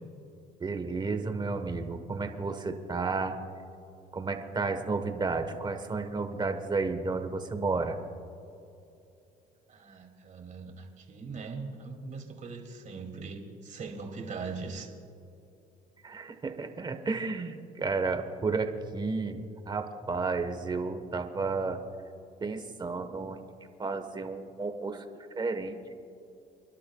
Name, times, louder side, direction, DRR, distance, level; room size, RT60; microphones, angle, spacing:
voice 1, 0.6-3.4 4.1-8.0 16.0-21.8 22.4-23.4 23.8-25.1 25.4-25.8, right 4 dB, 25° right, 7 dB, 1.2 m, -32 dB
voice 2, 9.7-14.9, right 4 dB, 50° right, 2 dB, 2.6 m, -40 dB
30.0 x 11.5 x 2.3 m, 2.7 s
cardioid pair, 110°, 17 cm